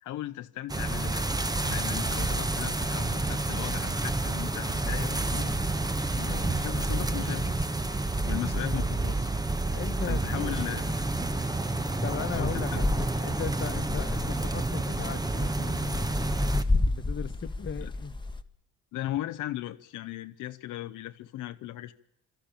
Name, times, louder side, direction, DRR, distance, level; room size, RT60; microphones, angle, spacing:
voice 1, 0.0-1.3 1.6-5.5 6.1-7.7 8.2-9.3 10.1-11.0 12.3-12.8 17.8-17.9 18.9-21.9, left 14 dB, 85° left, 1.0 m, -37 dB
sound 1, 0.7-16.6, right 2 dB, 15° right, 1.3 m, -29 dB
voice 2, 9.6-10.4 12.0-16.3 16.9-18.1, left 7 dB, 40° left, 1.4 m, -38 dB
sound 2, 11.3-18.4, left 2 dB, 15° left, 1.4 m, -32 dB
27.0 x 13.5 x 8.9 m
cardioid pair, 90°, 30 cm